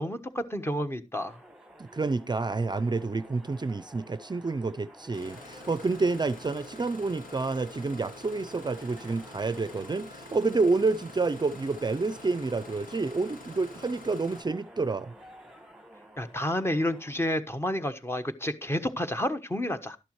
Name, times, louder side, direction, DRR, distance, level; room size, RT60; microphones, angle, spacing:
voice 1, 0.0-1.4 16.2-20.0, left 1 dB, 20° left, 1.2 m, -30 dB
sound 1, 1.2-17.1, right 1 dB, 5° right, 1.6 m, -52 dB
voice 2, 1.8-15.1, right 3 dB, 35° right, 0.5 m, -29 dB
Engine starting, 5.1-14.4, left 2 dB, 90° left, 2.1 m, -47 dB
12.0 x 11.5 x 3.1 m
wide cardioid pair, 105°, 14 cm